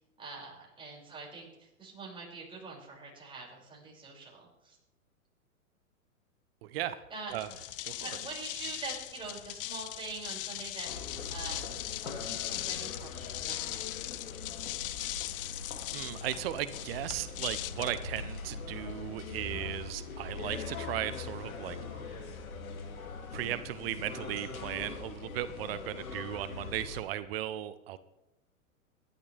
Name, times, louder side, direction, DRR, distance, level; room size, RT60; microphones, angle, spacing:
voice 1, 0.2-4.8 7.1-7.5 8.0-11.6 12.0-14.0, right 4 dB, 10° right, -3 dB, 6.2 m, -44 dB
voice 2, 6.6-7.0 7.3-7.5 7.8-7.9 15.9-21.8 22.0-22.2 23.3-28.0, right 12 dB, 40° right, 13 dB, 0.9 m, -36 dB
sound 1, 7.3-18.8, left 15 dB, 40° left, 0.6 m, -39 dB
sound 2, 10.8-27.0, left 4 dB, 70° left, 2.8 m, -42 dB
25.0 x 11.5 x 3.5 m, 0.91 s
hypercardioid pair, 115°, 43 cm